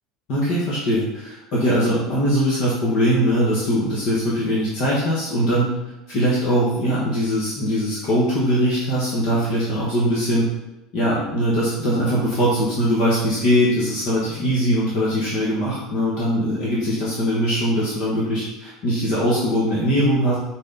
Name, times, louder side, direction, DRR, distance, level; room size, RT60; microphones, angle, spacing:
voice 1, 0.3-5.7 6.1-10.4 10.9-20.4, equal, 45° left, -6 dB, 1.3 m, -21 dB
6.2 x 4.2 x 3.9 m, 0.96 s
cardioid pair, 170°, 0 cm